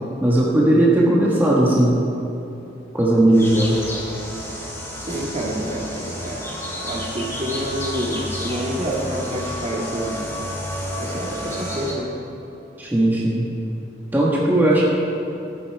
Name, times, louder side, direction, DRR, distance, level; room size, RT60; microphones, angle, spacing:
voice 1, 0.2-2.0 2.9-3.8 12.8-13.5 14.1-14.8, right 1 dB, 10° right, -5 dB, 1.5 m, -17 dB
sound 1, 3.3-11.9, equal, 15° left, 3.5 m, -30 dB
voice 2, 4.9-6.5 6.8-10.1 11.0-12.2, equal, 35° right, -2 dB, 1.9 m, -28 dB
15.0 x 11.0 x 4.7 m, 3.0 s
head